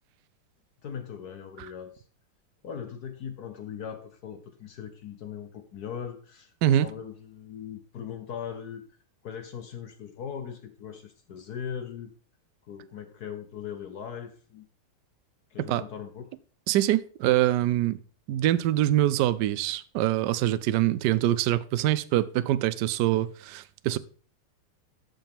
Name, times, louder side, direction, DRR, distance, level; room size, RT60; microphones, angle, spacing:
voice 1, 0.8-2.0 2.6-8.8 9.2-12.1 12.6-14.7 15.5-16.3, left 8 dB, 60° left, 1.1 m, -39 dB
voice 2, 16.7-18.0 18.3-24.0, right 13 dB, 75° right, 1.0 m, -24 dB
13.0 x 5.7 x 3.6 m
omnidirectional pair, 2.3 m